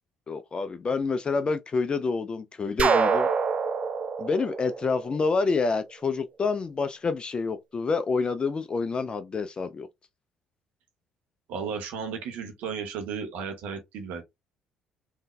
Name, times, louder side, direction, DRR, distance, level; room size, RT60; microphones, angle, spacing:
voice 1, 0.3-3.3 4.2-9.9, left 4 dB, 35° left, 0.4 m, -28 dB
sound 1, 2.8-5.6, right 5 dB, 45° right, 0.5 m, -26 dB
voice 2, 11.5-14.2, right 6 dB, 65° right, 0.8 m, -34 dB
3.6 x 2.6 x 2.3 m
hypercardioid pair, 55°, 3 cm